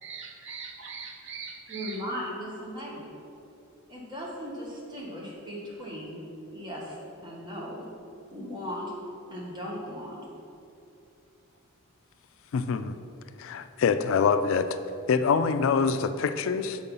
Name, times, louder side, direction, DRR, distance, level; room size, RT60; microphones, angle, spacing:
voice 1, 0.0-2.0, right 5 dB, 60° right, 3 dB, 0.8 m, -41 dB
voice 2, 1.7-3.1 3.9-6.2 6.5-7.0 7.2-7.8 8.3-8.9 9.3-10.2, equal, 20° right, -4 dB, 1.5 m, -37 dB
voice 3, 12.5-13.0 13.4-14.7 15.1-16.8, left 5 dB, 65° left, 11 dB, 0.3 m, -25 dB
6.7 x 4.8 x 5.4 m, 2.7 s
head